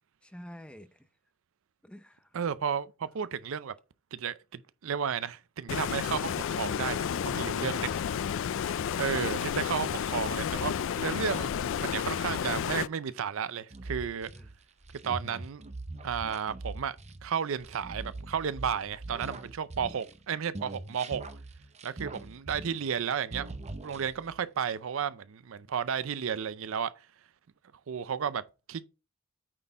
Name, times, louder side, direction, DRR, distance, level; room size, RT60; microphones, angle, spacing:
voice 1, 0.2-1.1 1.8-2.4 14.3-14.5 22.1-22.4, equal, 5° left, 0.6 m, -49 dB
voice 2, 2.3-3.7 4.1-8.0 8.4-14.3 15.0-15.6 16.0-17.0 17.2-21.2 21.8-23.5 23.8-26.9 27.9-28.4 28.7-28.9, right 7 dB, 70° right, 0.5 m, -33 dB
Stream, 5.7-12.9, left 8 dB, 65° left, 0.3 m, -31 dB
sound 1, 13.7-20.2 20.5-23.0 23.3-24.4, right 2 dB, 35° right, 0.8 m, -42 dB
8.9 x 4.2 x 4.6 m
head